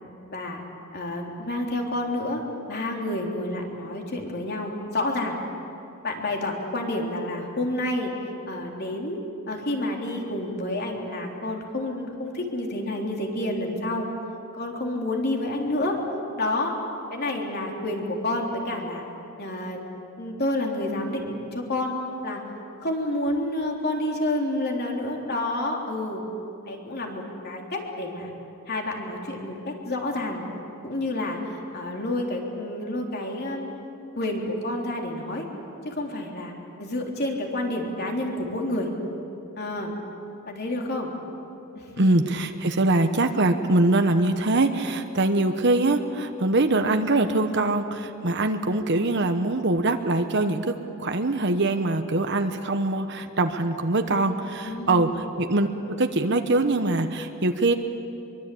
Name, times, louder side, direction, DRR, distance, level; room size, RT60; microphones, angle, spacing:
voice 1, 0.3-0.6 0.9-5.4 6.0-8.1 8.5-9.2 9.5-14.1 14.5-16.0 16.4-16.8 17.1-19.0 19.4-19.8 20.2-22.0 22.2-22.4 22.8-26.2 26.7-28.3 28.7-30.4 30.8-33.7 34.1-35.5 35.8-36.5 36.8-38.9 39.6-40.0 40.4-41.1 41.7-42.1 54.6-55.2, left 1 dB, 50° left, 0 dB, 3.6 m, -29 dB
voice 2, 42.0-57.7, right 2 dB, 55° right, 7 dB, 1.1 m, -23 dB
24.5 x 23.0 x 8.6 m, 2.7 s
head